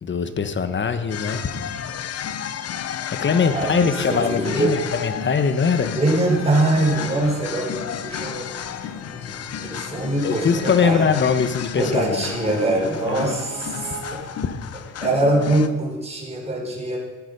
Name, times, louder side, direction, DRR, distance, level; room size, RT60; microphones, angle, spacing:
voice 1, 0.0-1.5 3.2-5.9 9.1-9.3 10.2-13.4, left 6 dB, 40° left, 10 dB, 1.2 m, -22 dB
sound 1, 1.1-15.7, left 9 dB, 55° left, 0.8 m, -32 dB
voice 2, 3.5-4.9 5.9-8.5 9.6-11.1 11.8-14.2 15.0-17.0, right 2 dB, 20° right, -3 dB, 4.8 m, -23 dB
sound 2, 5.8-14.1, left 1 dB, 90° left, 5.4 m, -40 dB
15.0 x 9.8 x 5.4 m, 1.3 s
cardioid pair, 90°, 30 cm